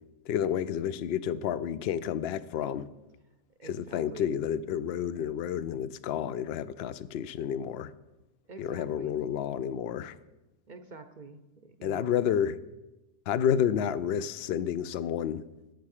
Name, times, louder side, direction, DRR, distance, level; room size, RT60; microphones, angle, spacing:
voice 1, 0.3-2.9 3.6-7.9 8.6-10.2 11.8-12.6 13.3-15.4, left 9 dB, 60° left, 16 dB, 0.7 m, -30 dB
voice 2, 3.6-4.3 8.5-9.2 10.7-12.2, right 3 dB, 45° right, 7 dB, 0.7 m, -47 dB
10.5 x 8.6 x 6.5 m, 1.0 s
omnidirectional pair, 1.3 m